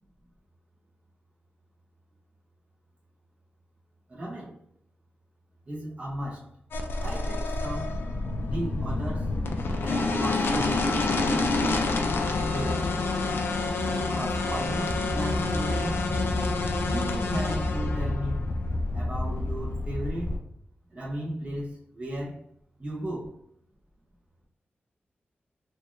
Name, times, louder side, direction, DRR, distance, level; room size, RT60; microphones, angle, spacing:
voice 1, 4.1-4.6 5.7-6.5 7.0-8.0 8.5-9.4 9.8-11.3 12.5-13.1 13.9-16.0 16.9-18.5 18.9-20.4 20.9-22.4 22.8-23.4, right 1 dB, 35° right, -5 dB, 1.2 m, -35 dB
sound 1, 6.7-20.4, left 2 dB, 85° left, 0.5 m, -27 dB
3.4 x 2.6 x 3.0 m, 0.70 s
wide cardioid pair, 140°, 4 cm